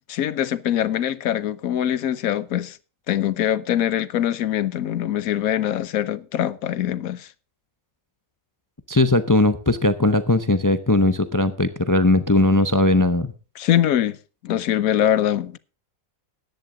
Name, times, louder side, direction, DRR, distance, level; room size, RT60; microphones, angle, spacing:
voice 1, 0.1-2.8 3.1-7.3 13.6-14.2 14.4-15.6, left 11 dB, 80° left, 1.2 m, -23 dB
voice 2, 8.9-13.3, left 2 dB, 25° left, 0.4 m, -19 dB
14.5 x 10.5 x 3.8 m
omnidirectional pair, 1.5 m